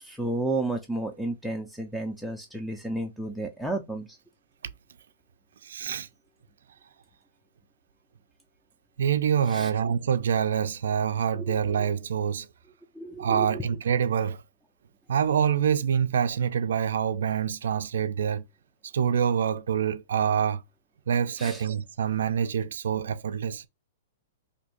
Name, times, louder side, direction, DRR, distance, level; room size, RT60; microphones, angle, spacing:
voice 1, 0.0-4.2 9.5-9.7 11.4-11.6 13.0-13.6 21.4-21.6, right 2 dB, ahead, 0.4 m, -32 dB
voice 2, 5.6-6.1 9.0-12.5 13.2-14.4 15.1-18.4 18.9-20.6 21.1-23.7, right 8 dB, 80° right, 0.3 m, -26 dB
2.6 x 2.5 x 4.2 m
hypercardioid pair, 150°, 0 cm